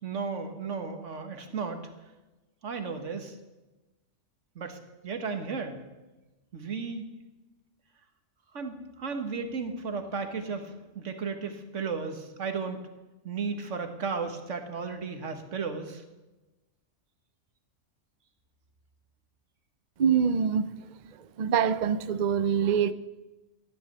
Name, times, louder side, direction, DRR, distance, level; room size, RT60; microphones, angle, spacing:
voice 1, 0.0-1.9 2.6-3.4 4.6-4.8 5.0-5.8 6.5-7.1 8.5-12.8 13.2-16.0, right 5 dB, 85° right, 7 dB, 1.8 m, -34 dB
voice 2, 20.0-20.7 21.4-22.9, right 7 dB, 50° right, 13 dB, 0.6 m, -24 dB
14.0 x 11.0 x 6.7 m, 1.1 s
omnidirectional pair, 1.2 m